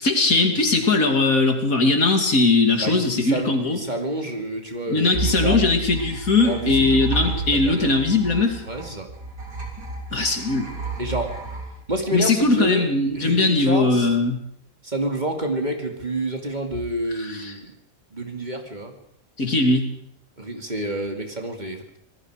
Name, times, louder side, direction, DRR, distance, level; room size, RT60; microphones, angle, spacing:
voice 1, 0.0-3.8 4.9-8.6 10.1-10.7 12.1-14.4 17.2-17.5 19.4-19.9, left 3 dB, 75° left, 4 dB, 3.2 m, -20 dB
voice 2, 2.8-5.7 6.4-7.0 7.5-7.9 8.7-9.1 11.0-11.3 11.9-12.9 13.1-14.1 14.8-17.7 18.1-18.9 20.4-22.0, right 1 dB, 30° right, 3 dB, 2.6 m, -28 dB
sound 1, 5.1-12.7, right 3 dB, 80° right, 4.0 m, -31 dB
26.0 x 20.0 x 5.0 m, 0.70 s
omnidirectional pair, 1.5 m